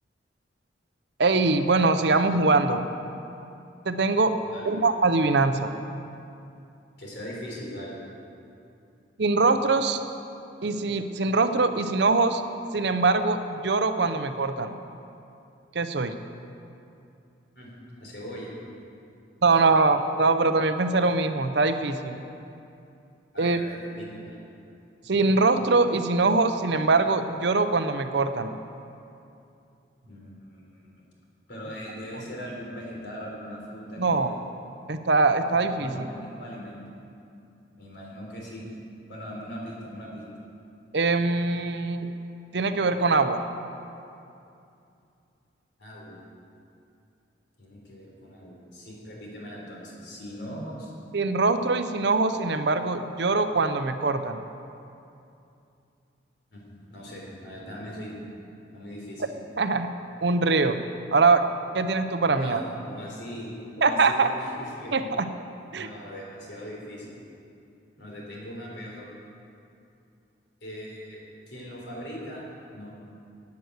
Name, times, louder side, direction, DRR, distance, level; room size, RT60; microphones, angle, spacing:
voice 1, 1.2-2.9 3.9-4.3 4.7-5.7 9.2-10.0 10.6-12.4 12.7-14.7 15.7-16.1 19.4-22.2 23.4-23.6 25.1-28.5 34.0-34.3 34.9-36.1 40.9-42.1 42.5-43.4 51.1-54.4 59.6-59.9 60.2-60.8 61.1-61.4 61.7-62.6 63.8-64.3 64.9-65.3 65.7-65.9, right 3 dB, 65° right, 9 dB, 0.7 m, -23 dB
voice 2, 7.0-8.0 17.6-17.7 18.0-18.5 19.5-19.9 23.3-24.4 30.0-31.0 31.5-34.4 35.8-36.8 37.8-38.6 39.1-40.2 45.8-46.2 47.6-50.9 56.5-56.6 56.9-58.3 58.7-59.2 62.3-65.0 65.7-67.2 68.0-69.1 70.6-71.2 71.5-72.4 72.7-72.9, equal, 65° left, -3 dB, 3.7 m, -40 dB
11.0 x 9.5 x 8.0 m, 2.6 s
head